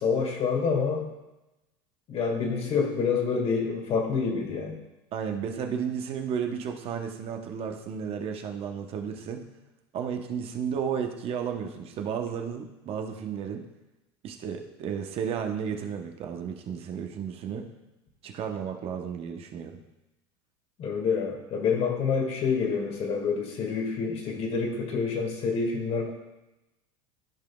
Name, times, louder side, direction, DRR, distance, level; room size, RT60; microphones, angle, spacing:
voice 1, 0.0-1.1 2.1-4.8 20.8-26.1, left 5 dB, 45° left, 2 dB, 1.8 m, -27 dB
voice 2, 5.1-9.5 9.9-13.7 14.2-17.7 18.2-19.8, right 7 dB, 45° right, 4 dB, 0.9 m, -33 dB
13.5 x 5.1 x 2.3 m, 0.99 s
hypercardioid pair, 95°, 14 cm